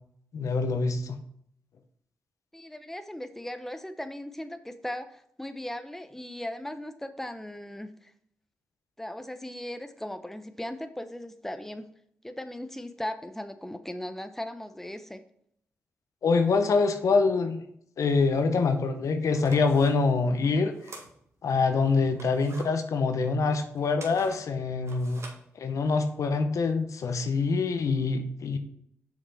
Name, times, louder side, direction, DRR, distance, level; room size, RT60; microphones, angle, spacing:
voice 1, 0.3-1.2 16.2-17.6 18.0-20.7 21.4-25.2 25.6-28.6, left 4 dB, 70° left, 7 dB, 0.9 m, -25 dB
voice 2, 2.5-8.1 9.0-11.9 12.2-15.2, left 1 dB, 5° left, 9 dB, 0.8 m, -38 dB
sound 1, 18.7-18.8 19.2-21.6 22.0-26.1, right 2 dB, 55° right, 1.9 m, -48 dB
6.5 x 5.2 x 4.1 m, 0.69 s
supercardioid pair, 45°, 6 cm